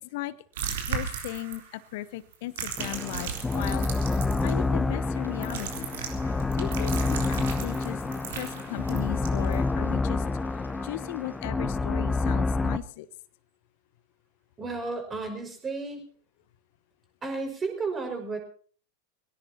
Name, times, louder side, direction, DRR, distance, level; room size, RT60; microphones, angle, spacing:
voice 1, 0.0-0.3 0.9-5.9 6.5-8.0 8.3-10.2 10.8-13.1, left 16 dB, 50° left, 17 dB, 0.9 m, -37 dB
sound 1, 0.5-1.8 2.3-4.5 5.4-9.5, right 7 dB, 55° right, 3.7 m, -36 dB
sound 2, 2.8-12.8, left 3 dB, 10° left, 0.9 m, -28 dB
sound 3, 5.0-11.4, left 1 dB, 85° left, 3.0 m, -52 dB
voice 2, 14.6-16.0 17.2-18.4, right 3 dB, 20° right, 3 dB, 5.3 m, -33 dB
24.0 x 17.0 x 2.8 m, 0.44 s
figure-of-eight pair, 90°, 0 cm